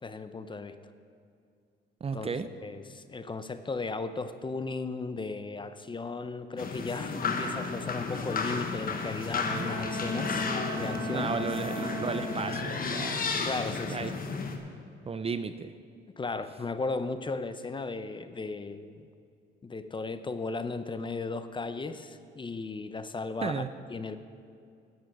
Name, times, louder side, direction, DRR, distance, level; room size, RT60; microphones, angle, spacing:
voice 1, 0.0-0.8 2.1-2.3 2.6-10.4 10.8-11.3 13.4-14.1 16.2-19.1 19.6-23.6 23.9-24.2, left 3 dB, 25° left, 11 dB, 0.6 m, -36 dB
voice 2, 2.0-2.5 9.5-9.8 11.1-13.3 13.9-14.1 15.1-15.7 23.4-23.7, right 5 dB, 30° right, 11 dB, 0.5 m, -34 dB
sound 1, 6.6-14.6, left 4 dB, 45° left, 1.2 m, -33 dB
Bowed string instrument, 9.1-13.2, right 1 dB, 70° right, 2.8 m, -38 dB
11.5 x 8.3 x 6.2 m, 2.4 s
cardioid pair, 90°, 20 cm